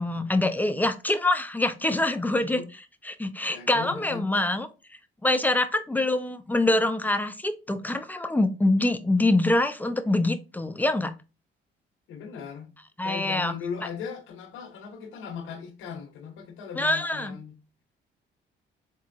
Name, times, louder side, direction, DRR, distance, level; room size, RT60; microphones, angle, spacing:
voice 1, 0.0-2.6 3.0-4.7 5.2-11.1 13.0-13.5 16.8-17.4, left 2 dB, 10° left, 0.6 m, -25 dB
voice 2, 3.5-4.3 12.1-12.7 13.0-17.6, left 7 dB, 85° left, 0.9 m, -38 dB
4.2 x 3.6 x 2.6 m
cardioid pair, 90°, 20 cm